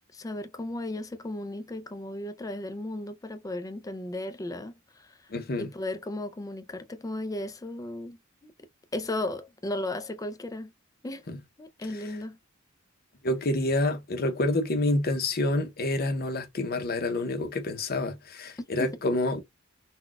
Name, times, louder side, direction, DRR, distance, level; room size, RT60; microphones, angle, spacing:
voice 1, 0.1-5.2 5.6-8.2 8.4-8.5 8.9-10.7 11.0-11.2 11.6-12.4 18.8-18.9, left 1 dB, 15° left, 0.4 m, -35 dB
voice 2, 5.3-5.7 13.2-19.4, left 2 dB, 45° left, 0.7 m, -28 dB
3.9 x 2.3 x 2.3 m
head